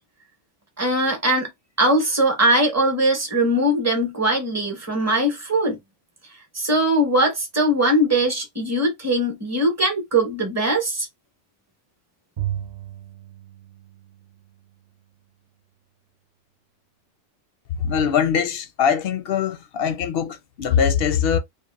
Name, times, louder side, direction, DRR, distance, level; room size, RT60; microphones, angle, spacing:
voice 1, 0.8-1.5 1.8-5.8 6.5-11.1, right 1 dB, 15° right, 0.9 m, -21 dB
Bowed string instrument, 12.4-14.8, right 12 dB, 60° right, 0.4 m, -34 dB
voice 2, 17.8-21.4, left 7 dB, 60° left, 0.7 m, -22 dB
2.9 x 2.3 x 2.3 m
omnidirectional pair, 1.3 m